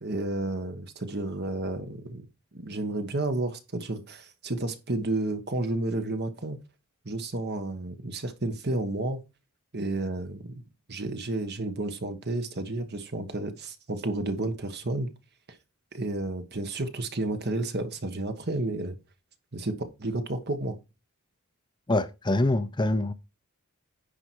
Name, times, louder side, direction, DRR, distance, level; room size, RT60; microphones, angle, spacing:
voice 1, 0.0-2.2 2.5-6.6 7.0-9.2 9.7-10.6 10.9-15.1 15.9-19.0 19.5-20.8, right 2 dB, 50° right, 1.4 m, -31 dB
voice 2, 21.9-23.1, left 2 dB, 20° left, 0.6 m, -25 dB
10.0 x 5.0 x 4.6 m
head